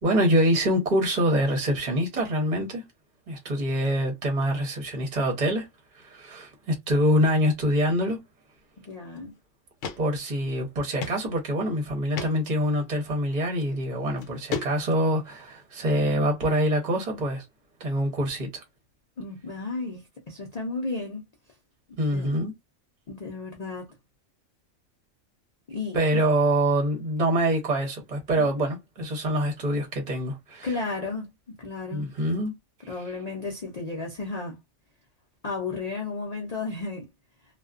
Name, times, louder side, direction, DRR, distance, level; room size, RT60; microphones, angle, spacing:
voice 1, 0.0-2.8 3.3-5.7 5.9-8.2 10.0-17.4 17.8-18.6 22.0-22.5 25.9-30.7 31.9-32.6, equal, 40° right, 0.7 m, -25 dB
voice 2, 8.8-9.4 19.2-21.2 22.1-22.4 23.1-23.9 25.7-26.2 28.3-28.5 30.6-32.1 32.9-34.6 35.4-37.1, left 3 dB, 50° left, 0.4 m, -33 dB
sound 1, 9.2-9.3 9.8-10.0 10.3-10.4 11.0-11.2 11.6-11.7 12.1-12.3 13.5-13.6 14.2-15.0, left 6 dB, 70° left, 0.9 m, -33 dB
2.4 x 2.2 x 2.3 m
omnidirectional pair, 1.4 m